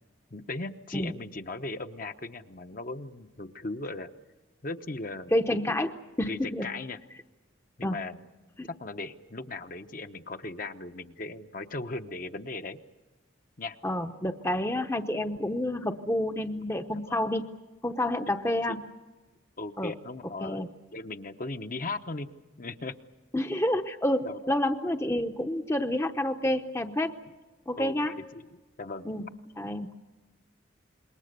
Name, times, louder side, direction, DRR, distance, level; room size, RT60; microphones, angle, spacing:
voice 1, 0.3-4.1 4.6-5.3 6.2-7.0 7.8-8.2 8.8-12.8 13.6-13.8 16.9-17.2 18.5-18.6 19.6-20.6 20.9-22.3 22.6-22.9 24.2-24.4 27.8-29.1, left 2 dB, 45° left, 7 dB, 0.9 m, -38 dB
voice 2, 5.3-5.9 6.2-6.7 7.8-8.0 8.6-8.7 13.8-17.4 17.8-18.8 19.8-19.9 20.4-20.7 23.3-27.1 27.7-28.2 29.0-29.3 29.6-29.9, left 1 dB, 15° left, 7 dB, 0.8 m, -29 dB
27.0 x 22.0 x 6.7 m, 1.2 s
head